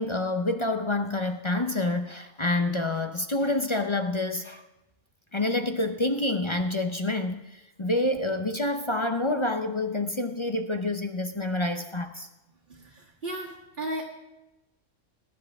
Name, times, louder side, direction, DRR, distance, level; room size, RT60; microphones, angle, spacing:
voice 1, 0.0-4.6 5.3-12.3, left 2 dB, 35° left, 7 dB, 0.5 m, -28 dB
voice 2, 12.7-14.0, right 1 dB, 45° right, -5 dB, 1.8 m, -35 dB
20.5 x 10.0 x 3.5 m, 0.98 s
omnidirectional pair, 1.3 m